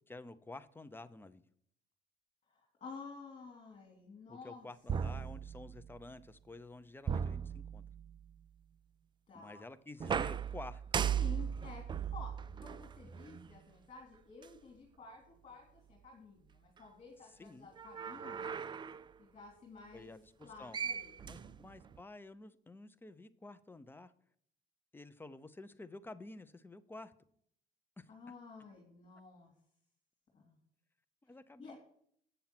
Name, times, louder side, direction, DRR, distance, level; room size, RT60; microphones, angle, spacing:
voice 1, 0.1-1.4 4.3-7.8 9.3-10.8 17.4-17.7 19.9-20.8 21.2-24.1 24.9-27.1 28.0-28.1 31.2-31.8, left 2 dB, 10° left, 0.7 m, -51 dB
voice 2, 2.5-4.7 9.3-9.6 11.1-18.5 19.2-20.1 20.4-21.5 28.1-29.5 30.3-30.6 31.6-31.7, left 4 dB, 40° left, 2.9 m, -52 dB
sound 1, 4.9-6.0 7.1-8.2 10.0-13.6 14.4-14.5 17.8-19.1 20.4-20.5 20.7-22.0, right 7 dB, 25° right, 0.4 m, -38 dB
8.9 x 6.9 x 6.0 m
cardioid pair, 110°, 17 cm